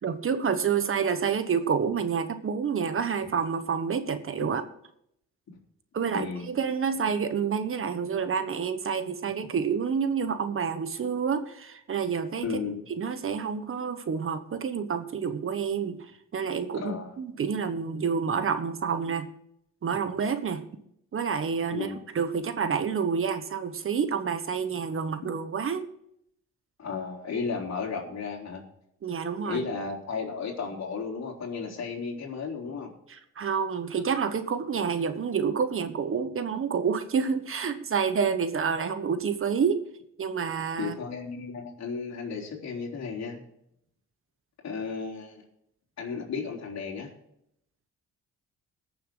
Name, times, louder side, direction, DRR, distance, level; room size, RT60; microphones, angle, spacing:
voice 1, 0.0-4.6 5.9-12.4 13.0-19.3 19.8-20.6 21.1-21.9 22.1-25.9 29.0-29.6 33.1-39.8 40.2-40.9, right 6 dB, 45° right, 10 dB, 1.2 m, -28 dB
voice 2, 6.1-6.5 12.4-12.8 16.7-17.2 21.7-22.0 26.8-28.6 29.4-32.9 40.8-43.4 44.6-45.4 46.0-47.1, left 5 dB, 60° left, 0 dB, 3.7 m, -34 dB
21.0 x 7.0 x 3.8 m, 0.74 s
cardioid pair, 90°, 30 cm